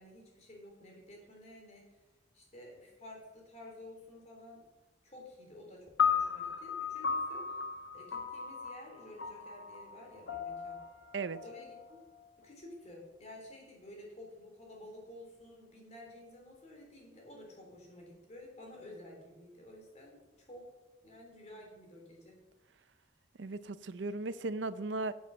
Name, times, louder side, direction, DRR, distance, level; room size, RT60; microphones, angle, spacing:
voice 1, 0.0-2.0 2.3-4.6 5.0-7.6 7.9-10.8 11.4-12.0 12.4-20.7 21.0-22.4, left 1 dB, 40° left, -1 dB, 3.6 m, -52 dB
sound 1, 6.0-12.4, left 6 dB, 85° left, 1.1 m, -36 dB
voice 2, 23.4-25.1, right 3 dB, 80° right, 14 dB, 0.6 m, -36 dB
10.0 x 7.2 x 7.4 m, 1.1 s
head